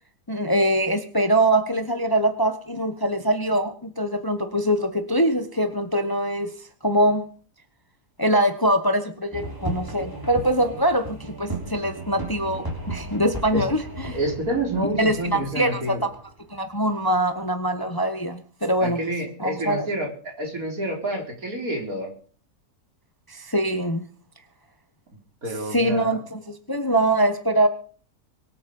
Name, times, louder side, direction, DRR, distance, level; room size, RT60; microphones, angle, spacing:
voice 1, 0.3-6.5 6.8-7.2 8.2-14.2 15.0-16.1 16.5-19.0 19.4-19.9 23.3-24.1 25.7-27.7, right 1 dB, 15° left, 9 dB, 1.2 m, -23 dB
sound 1, 9.3-16.8, right 2 dB, 15° right, 3.4 m, -35 dB
voice 2, 14.1-16.1 17.8-17.9 18.8-22.1 25.4-26.2, right 1 dB, 65° right, 2 dB, 4.5 m, -28 dB
23.5 x 8.7 x 5.4 m, 0.43 s
omnidirectional pair, 1.6 m